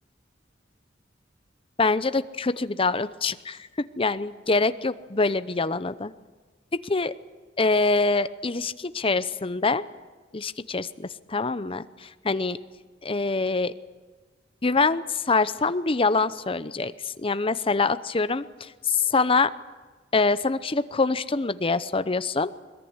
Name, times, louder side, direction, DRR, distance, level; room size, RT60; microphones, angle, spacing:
voice 1, 1.8-3.7 4.0-6.1 6.7-7.1 7.6-9.8 10.3-12.6 13.0-13.7 14.6-19.5 20.1-22.5, left 3 dB, 30° left, 13 dB, 0.7 m, -25 dB
22.0 x 21.0 x 9.6 m, 1.3 s
head